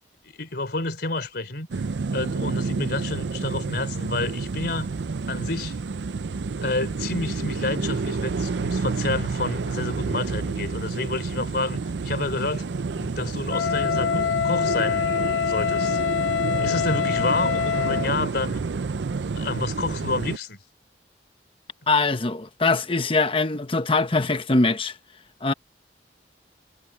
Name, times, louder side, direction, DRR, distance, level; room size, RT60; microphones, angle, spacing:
voice 1, 0.2-1.8 2.1-4.9 5.3-5.8 6.6-12.7 13.0-15.0 15.3-18.6 19.4-20.6, left 2 dB, 65° left, 3.7 m, -29 dB
sound 1, 1.7-20.4, right 4 dB, 75° right, 0.5 m, -29 dB
Wind instrument woodwind instrument, 13.5-18.1, left 8 dB, 85° left, 0.4 m, -25 dB
voice 2, 21.9-24.9 25.4-25.5, left 3 dB, 30° left, 1.0 m, -22 dB
head